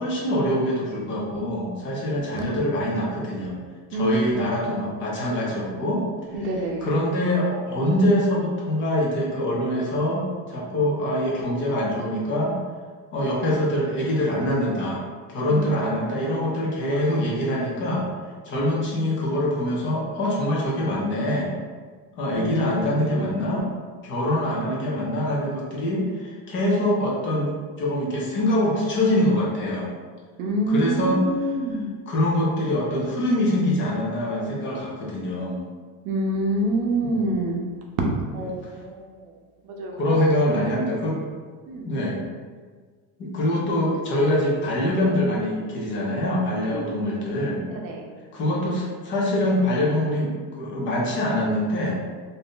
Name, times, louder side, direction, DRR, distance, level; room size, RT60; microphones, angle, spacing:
voice 1, 0.0-3.6 4.0-6.0 6.8-12.5 13.1-15.0 15.3-18.1 18.4-21.5 22.2-23.7 24.0-27.5 27.8-29.9 30.7-31.2 32.1-35.6 37.0-37.2 40.0-41.2 41.8-42.2 43.2-47.6 48.3-52.0, left 1 dB, 30° left, -4 dB, 0.6 m, -24 dB
voice 2, 3.9-4.8 6.3-6.9 15.5-15.8 22.3-23.6 30.4-31.9 36.0-37.6 38.0-39.4 39.6-40.7 41.7-41.9 46.7-47.0 47.7-48.0, right 1 dB, 55° right, 1 dB, 0.6 m, -27 dB
2.6 x 2.4 x 3.6 m, 1.5 s
cardioid pair, 180°, 39 cm